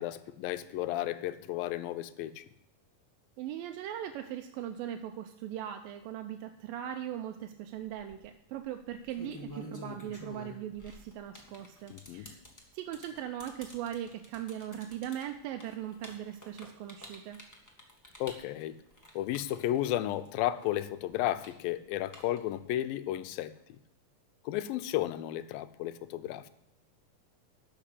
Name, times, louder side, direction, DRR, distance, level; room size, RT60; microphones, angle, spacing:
voice 1, 0.0-2.4 11.9-12.3 18.2-18.8 19.2-23.5 24.5-26.5, left 13 dB, 85° left, 12 dB, 2.4 m, -33 dB
voice 2, 3.4-12.4 12.7-17.4, right 10 dB, 85° right, 6 dB, 2.3 m, -39 dB
sound 1, 7.8-8.2 8.9-20.3 20.6-22.7, left 1 dB, 20° left, 0.4 m, -49 dB
12.5 x 5.8 x 8.2 m, 0.84 s
omnidirectional pair, 4.1 m